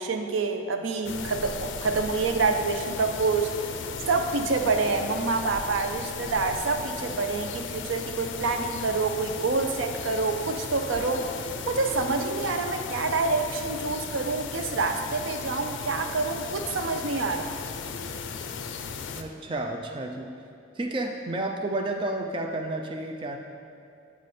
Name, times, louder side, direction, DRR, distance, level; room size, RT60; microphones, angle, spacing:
voice 1, 0.0-3.8 4.1-11.3 11.7-17.5, right 4 dB, 90° right, 6 dB, 0.5 m, -27 dB
sound 1, 1.0-19.2, left 5 dB, 80° left, 0.4 m, -36 dB
voice 2, 19.2-20.3 20.8-23.4, right 2 dB, 25° right, 3 dB, 0.4 m, -31 dB
8.2 x 4.9 x 4.2 m, 2.5 s
head